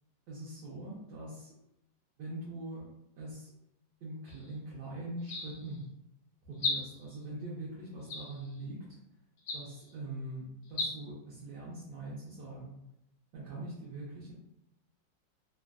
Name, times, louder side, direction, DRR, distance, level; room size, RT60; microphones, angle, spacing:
voice 1, 0.3-1.5 2.2-2.8 3.2-3.5 4.0-5.9 6.5-9.0 9.5-12.8 13.3-14.3, right 2 dB, 75° right, -7 dB, 1.2 m, -42 dB
sound 1, 4.3-4.5 5.2-5.8 6.5-7.2 8.1-8.6 9.4-9.9 10.6-10.9, left 3 dB, 65° left, 0.8 m, -37 dB
3.2 x 2.1 x 2.4 m, 0.84 s
omnidirectional pair, 1.9 m